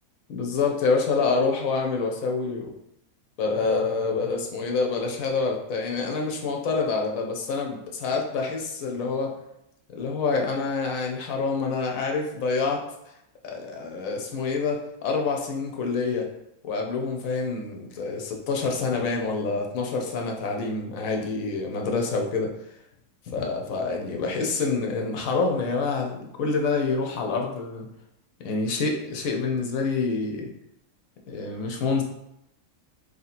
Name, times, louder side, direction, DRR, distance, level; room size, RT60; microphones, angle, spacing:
voice 1, 0.3-2.7 3.4-9.3 9.9-12.8 13.4-16.3 16.6-22.5 23.3-27.9 28.4-30.5 31.3-32.0, left 4 dB, 70° left, 1 dB, 1.1 m, -27 dB
3.1 x 2.8 x 4.1 m, 0.81 s
omnidirectional pair, 1.5 m